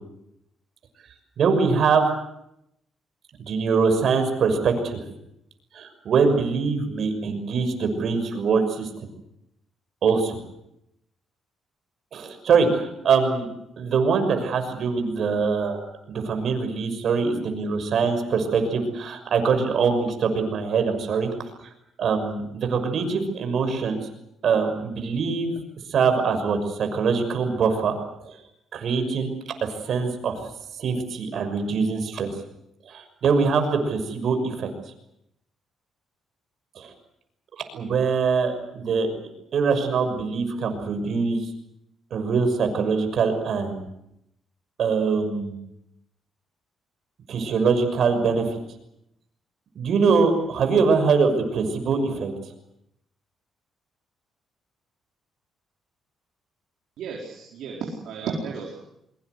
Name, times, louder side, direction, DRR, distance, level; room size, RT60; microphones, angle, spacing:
voice 1, 1.4-2.1 3.4-5.1 5.7-9.1 10.0-10.4 12.1-13.5 13.8-21.7 22.0-24.0 24.4-25.5 25.9-27.9 28.2-28.4 28.7-29.3 29.6-30.4 30.8-32.3 32.9-34.7 36.7-36.9 37.7-39.1 39.5-41.5 42.1-43.8 44.8-45.6 47.3-48.6 49.7-52.3, right 5 dB, 65° right, 6 dB, 6.1 m, -23 dB
voice 2, 57.0-58.7, right 5 dB, 80° right, -2 dB, 4.6 m, -33 dB
24.0 x 22.5 x 8.1 m, 0.80 s
cardioid pair, 90°, 0 cm